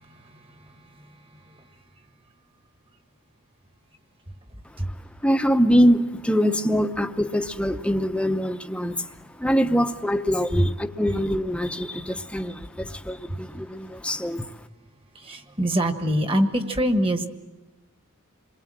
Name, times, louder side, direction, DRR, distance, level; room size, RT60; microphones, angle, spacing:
voice 1, 0.0-1.1 1.5-1.6 4.8-4.9 9.6-9.9 10.5-10.7 13.3-13.4 15.1-17.3, equal, 25° right, 7 dB, 1.4 m, -25 dB
voice 2, 5.2-9.1 9.4-14.5, equal, 5° left, 8 dB, 0.8 m, -23 dB
28.0 x 21.5 x 7.6 m, 1.2 s
head